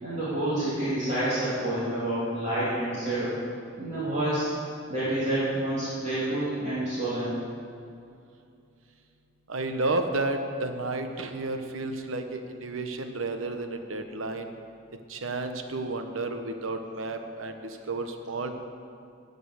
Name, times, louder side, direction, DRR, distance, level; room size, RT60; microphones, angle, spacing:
voice 1, 0.0-3.4 3.8-4.5 4.9-7.4, right 1 dB, 35° right, -12 dB, 3.2 m, -28 dB
voice 2, 9.5-14.5 15.1-18.5, right 2 dB, 85° right, 6 dB, 1.0 m, -32 dB
14.0 x 5.3 x 8.2 m, 2.5 s
head